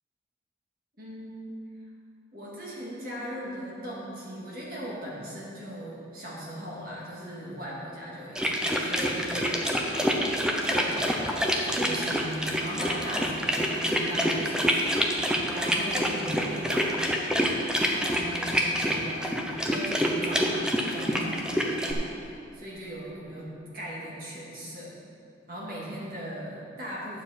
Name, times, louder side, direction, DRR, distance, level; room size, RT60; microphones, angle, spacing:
voice 1, 1.0-1.6 2.3-9.6 9.9-10.3 10.6-17.2 17.7-19.4 19.7-25.0 25.5-27.2, equal, 50° right, -6 dB, 2.2 m, -38 dB
sound 1, 8.4-21.9, equal, 5° right, 0.6 m, -27 dB
9.6 x 7.2 x 4.4 m, 2.5 s
head